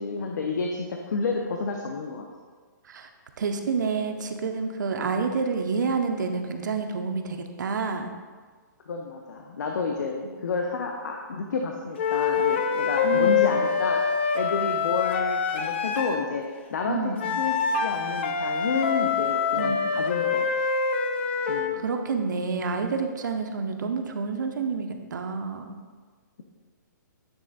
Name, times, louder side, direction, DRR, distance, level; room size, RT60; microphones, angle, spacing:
voice 1, 0.0-2.3 8.9-14.0 14.3-16.4 16.7-20.5 21.5-21.8, left 4 dB, 65° left, 1 dB, 0.7 m, -30 dB
voice 2, 3.4-8.1 13.0-13.7 16.9-17.3 19.5-20.0 21.8-25.8, right 4 dB, 70° right, 5 dB, 0.7 m, -29 dB
sound 1, 12.0-16.3 17.2-21.8, left 6 dB, 35° left, 0.4 m, -25 dB
9.7 x 3.3 x 4.0 m, 1.5 s
hypercardioid pair, 170°, 10 cm